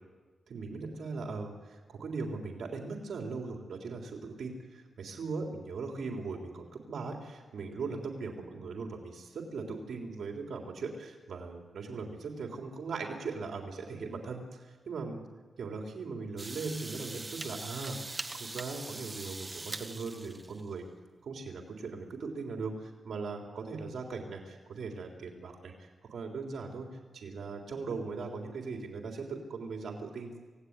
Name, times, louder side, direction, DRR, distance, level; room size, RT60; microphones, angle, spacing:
voice 1, 0.5-15.2 15.6-20.9 21.2-30.3, right 4 dB, 75° right, 1 dB, 3.7 m, -39 dB
sound 1, 16.4-20.7, right 2 dB, 20° right, 1.3 m, -42 dB
27.0 x 17.5 x 9.8 m, 1.4 s
wide cardioid pair, 135°, 0 cm